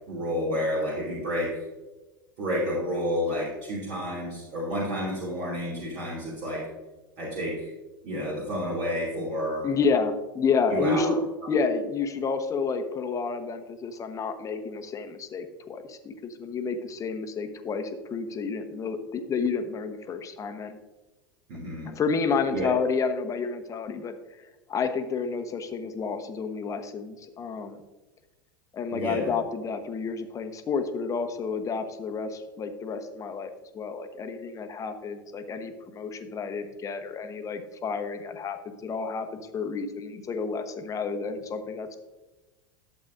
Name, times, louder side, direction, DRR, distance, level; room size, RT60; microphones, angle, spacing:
voice 1, 0.1-1.7 2.4-6.7 7.2-7.7 8.0-9.7 10.7-11.1 11.6-11.7 21.5-21.9 22.5-22.7 28.9-29.3, equal, 50° right, -5 dB, 2.5 m, -30 dB
voice 2, 9.6-20.8 21.9-27.8 28.7-42.0, left 5 dB, 25° left, 8 dB, 1.0 m, -30 dB
12.0 x 7.6 x 2.6 m, 1.1 s
figure-of-eight pair, 85°, 12 cm